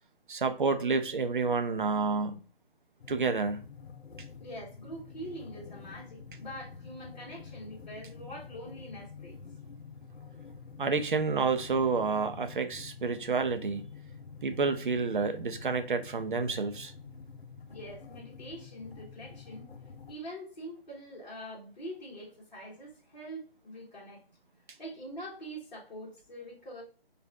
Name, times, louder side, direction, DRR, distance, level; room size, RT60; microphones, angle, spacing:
voice 1, 0.3-2.4 3.1-3.6 10.8-13.8 14.4-16.9, right 4 dB, 55° right, 0.5 m, -29 dB
sound 1, 3.0-20.1, left 5 dB, 90° left, 0.5 m, -48 dB
voice 2, 4.4-9.3 17.7-19.6 20.1-24.2 24.8-26.8, equal, 45° left, 1.2 m, -44 dB
4.6 x 2.4 x 2.3 m
figure-of-eight pair, 155°, 30 cm